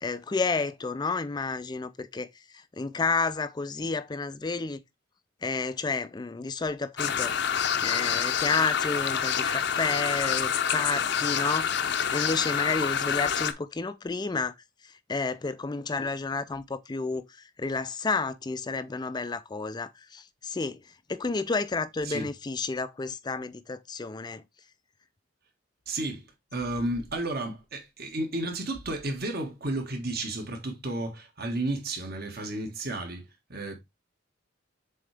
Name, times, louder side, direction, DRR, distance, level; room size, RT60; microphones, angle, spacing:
voice 1, 0.0-2.3 2.5-4.8 5.4-7.3 7.8-14.5 15.1-17.2 17.6-20.8 21.1-24.4, left 4 dB, 20° left, 0.4 m, -31 dB
sound 1, 7.0-13.5, left 8 dB, 60° left, 0.6 m, -27 dB
voice 2, 25.9-33.8, right 2 dB, 50° right, 1.6 m, -32 dB
7.4 x 3.8 x 3.4 m
head